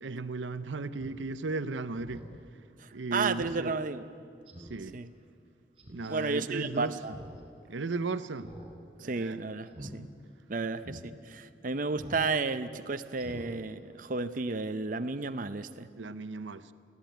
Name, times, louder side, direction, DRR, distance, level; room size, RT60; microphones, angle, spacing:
voice 1, 0.0-2.2 2.9-3.7 4.7-4.9 5.9-6.9 7.7-8.5 9.2-9.4 16.0-16.7, right 3 dB, 85° right, 0.7 m, -35 dB
Speech synthesizer, 0.9-1.2 1.6-1.7 2.0-2.3 2.7-2.8 3.4-3.6 3.9-4.0 4.5-4.8 5.8-6.1 7.0-7.4 7.7-7.8 8.4-8.7 9.0-9.2 9.7-9.9 10.4-10.5 10.8-11.0 12.0-12.3 12.6-12.7 13.1-13.5 13.8-13.9, equal, 30° right, 4.7 m, -46 dB
voice 2, 2.8-4.1 4.9-5.1 6.1-7.2 9.0-10.1 10.5-15.9, right 4 dB, 45° right, 0.7 m, -33 dB
23.5 x 15.5 x 9.2 m
head